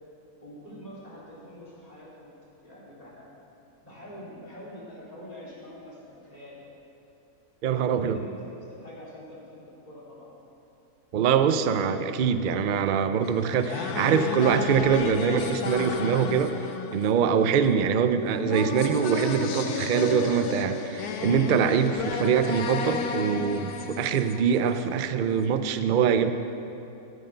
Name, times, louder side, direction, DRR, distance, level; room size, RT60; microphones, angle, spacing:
voice 1, 0.4-2.3 2.6-3.3 3.8-6.6 7.8-10.3 20.0-20.5, equal, 25° left, -7 dB, 3.4 m, -45 dB
voice 2, 7.6-8.2 11.1-16.5 16.9-26.3, right 7 dB, 70° right, 10 dB, 0.4 m, -24 dB
sound 1, 13.2-25.1, left 5 dB, 90° left, 1.3 m, -32 dB
14.0 x 7.7 x 6.8 m, 2.8 s
omnidirectional pair, 1.6 m